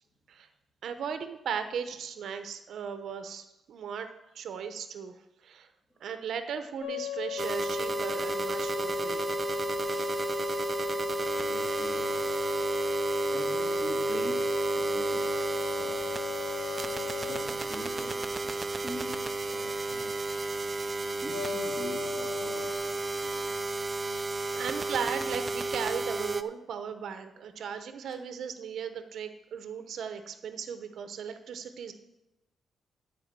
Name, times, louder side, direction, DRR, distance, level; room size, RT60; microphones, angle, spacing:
voice 1, 0.8-4.1 4.3-5.1 5.4-5.7 6.0-9.7 10.4-10.7 16.3-16.9 24.0-24.1 24.6-31.9, right 7 dB, 70° right, 8 dB, 0.8 m, -37 dB
sound 1, 6.8-17.5 21.3-22.7, left 10 dB, 50° left, 1.8 m, -38 dB
sound 2, 7.4-26.4, right 3 dB, 25° right, 0.5 m, -32 dB
voice 2, 9.6-10.2 11.4-12.3 13.3-15.4 15.8-16.0 17.2-20.2 21.1-22.9 24.5-24.7 28.0-28.2, left 1 dB, 15° left, -1 dB, 2.6 m, -44 dB
12.0 x 4.8 x 7.5 m, 0.93 s
cardioid pair, 125°, 0 cm